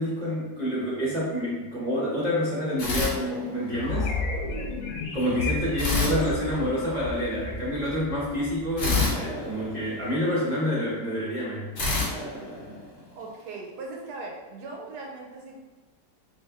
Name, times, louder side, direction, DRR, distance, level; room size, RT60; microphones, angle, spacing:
voice 1, 0.0-4.1 5.1-11.7, equal, 40° right, -8 dB, 0.6 m, -28 dB
sound 1, 2.8-3.9 5.8-7.2 8.8-10.5 11.8-13.3, left 3 dB, 40° left, 1.0 m, -29 dB
sound 2, 3.7-9.8, left 3 dB, 70° left, 0.9 m, -34 dB
sound 3, 4.0-6.5, left 3 dB, 90° left, 1.3 m, -38 dB
voice 2, 5.2-6.4 13.1-15.6, right 3 dB, 70° right, -1 dB, 1.1 m, -40 dB
3.4 x 2.5 x 3.5 m, 1.3 s
omnidirectional pair, 1.9 m